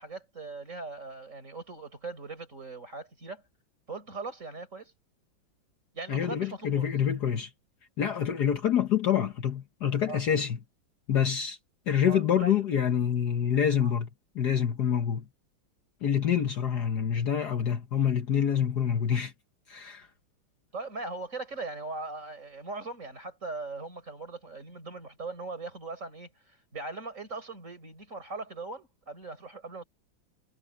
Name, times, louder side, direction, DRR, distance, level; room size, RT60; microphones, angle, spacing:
voice 1, 0.0-3.4 3.9-4.9 5.9-6.9 10.1-10.2 12.1-12.6 13.8-13.9 20.7-29.8, right 3 dB, 35° right, 5.6 m, -40 dB
voice 2, 6.1-7.5 8.0-10.6 11.1-11.6 11.9-14.1 14.3-15.2 16.0-19.3 19.7-20.1, left 8 dB, 55° left, 1.6 m, -26 dB
omnidirectional pair, 2.2 m